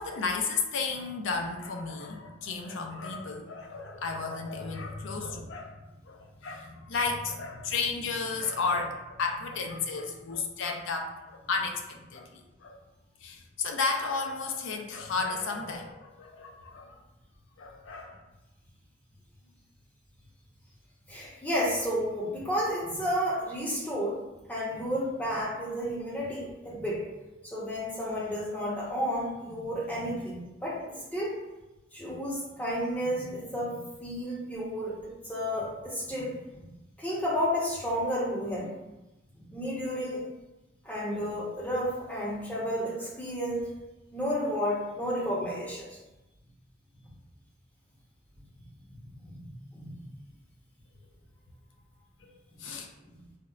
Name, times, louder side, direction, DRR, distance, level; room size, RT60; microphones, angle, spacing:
voice 1, 0.0-5.7 6.1-12.8 13.2-17.0 17.6-18.2 52.2-52.3 52.6-52.9, left 4 dB, 75° left, 3 dB, 0.4 m, -33 dB
voice 2, 21.1-24.2 24.5-31.3 31.9-36.3 37.0-38.7 39.5-40.2 40.8-43.6 44.1-46.0 49.1-49.4 49.7-49.9, equal, 10° left, -6 dB, 0.7 m, -32 dB
4.1 x 2.0 x 2.4 m, 1.0 s
head